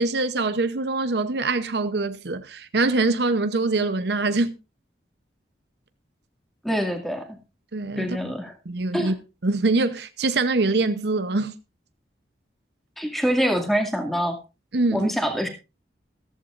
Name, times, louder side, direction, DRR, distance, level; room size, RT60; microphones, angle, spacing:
voice 1, 0.0-4.5 7.7-8.2 8.7-9.1 9.4-11.5 14.7-15.1, right 3 dB, 65° right, 0.8 m, -24 dB
voice 2, 6.6-7.3 8.0-8.5 8.9-9.1 13.0-14.4 14.9-15.5, equal, ahead, 2.2 m, -25 dB
14.5 x 14.0 x 2.5 m
head